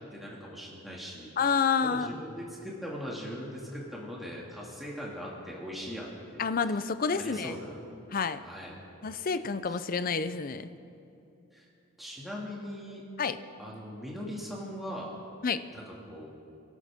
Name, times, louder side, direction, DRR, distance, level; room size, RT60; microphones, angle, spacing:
voice 1, 0.1-1.3 1.8-6.8 7.1-7.8 8.4-8.8 9.7-9.8 11.5-11.7 12.0-13.0 13.6-15.1 15.7-16.3, equal, ahead, -5 dB, 2.2 m, -40 dB
voice 2, 1.4-2.1 6.4-7.5 8.1-8.4 9.0-10.7 13.2-13.4 15.4-15.6, left 5 dB, 40° left, 12 dB, 0.5 m, -29 dB
27.5 x 12.5 x 3.6 m, 2.7 s
head